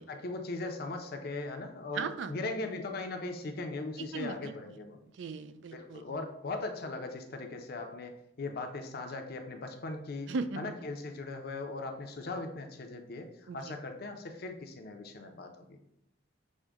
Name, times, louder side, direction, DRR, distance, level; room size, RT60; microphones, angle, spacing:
voice 1, 0.1-5.0 5.7-10.3 10.6-15.8, left 3 dB, 55° left, 5 dB, 0.6 m, -39 dB
voice 2, 1.9-2.3 4.1-4.5 5.2-6.2 10.3-10.7 13.5-13.7, right 4 dB, 75° right, 11 dB, 0.4 m, -37 dB
6.3 x 2.1 x 3.5 m, 0.79 s
head